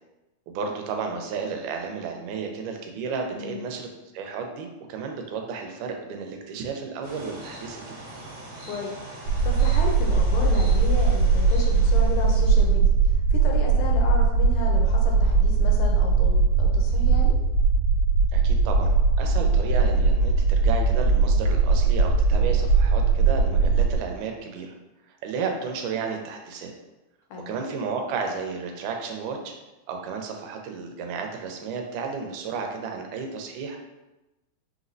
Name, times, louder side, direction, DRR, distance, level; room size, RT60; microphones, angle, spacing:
voice 1, 0.5-3.9 4.1-8.0 18.3-24.8 25.1-26.7 27.5-29.6 29.9-33.8, right 5 dB, 90° right, 3 dB, 2.1 m, -32 dB
voice 2, 3.3-3.6 8.7-9.0 9.4-17.4 27.3-27.5, left 3 dB, 80° left, 0 dB, 2.0 m, -33 dB
sound 1, 7.0-12.7, right 1 dB, 55° right, 2.2 m, -42 dB
sound 2, 9.2-24.0, right 4 dB, 70° right, 1.8 m, -20 dB
5.6 x 3.0 x 2.6 m, 1.0 s
omnidirectional pair, 3.6 m